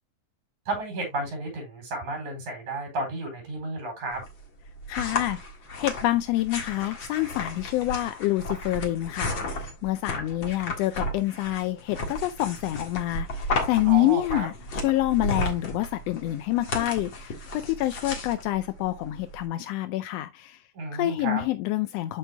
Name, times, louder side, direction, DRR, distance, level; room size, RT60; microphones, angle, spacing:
voice 1, 0.7-4.2 13.9-14.5 20.7-21.4, right 2 dB, 70° right, 5.6 m, -32 dB
sound 1, 4.1-19.4, left 1 dB, 45° left, 2.2 m, -34 dB
voice 2, 4.9-5.4 5.8-20.6 20.9-22.2, left 16 dB, 80° left, 1.5 m, -27 dB
13.5 x 4.7 x 2.2 m
omnidirectional pair, 3.4 m